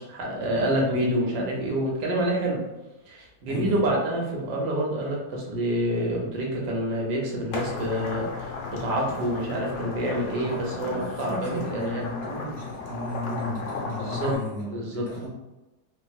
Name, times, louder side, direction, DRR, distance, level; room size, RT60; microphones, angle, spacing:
voice 1, 0.0-2.6 3.1-12.0 14.0-14.4 14.7-15.1, right 1 dB, 70° right, -2 dB, 1.3 m, -27 dB
voice 2, 3.5-3.8 10.4-15.3, equal, 40° right, -7 dB, 0.7 m, -35 dB
sound 1, 7.5-14.4, left 4 dB, 80° left, 1.4 m, -35 dB
3.5 x 2.4 x 2.2 m, 1.1 s
omnidirectional pair, 1.9 m